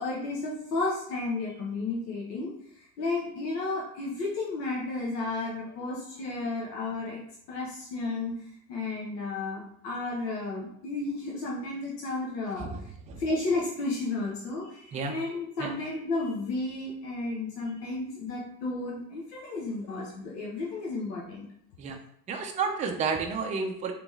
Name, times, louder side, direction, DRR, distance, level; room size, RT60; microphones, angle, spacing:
voice 1, 0.0-7.2 7.5-12.9 13.2-21.4, left 3 dB, 85° left, -3 dB, 1.0 m, -33 dB
voice 2, 12.6-13.2 14.9-15.1 15.6-15.7 21.8-22.0 22.3-23.9, right 5 dB, 15° right, 3 dB, 0.3 m, -31 dB
3.5 x 3.1 x 3.1 m, 0.72 s
supercardioid pair, 105°, 48 cm